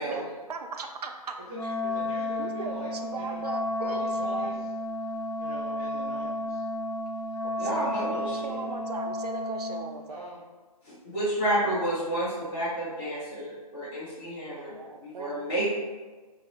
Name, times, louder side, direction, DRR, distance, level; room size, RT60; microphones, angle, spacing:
voice 1, 0.0-1.7 2.4-4.5 7.6-10.2 14.7-15.4, right 4 dB, 80° right, 5 dB, 0.4 m, -38 dB
Wind instrument woodwind instrument, 1.5-9.9, left 1 dB, 90° left, 0.6 m, -32 dB
voice 2, 1.8-2.9 3.1-3.4 3.8-4.5 5.4-6.6 10.1-10.4, right 1 dB, 25° right, -7 dB, 0.6 m, -42 dB
voice 3, 7.6-8.6 10.8-15.7, right 1 dB, 45° left, -11 dB, 1.1 m, -30 dB
2.9 x 2.0 x 3.9 m, 1.3 s
figure-of-eight pair, 150°, 20 cm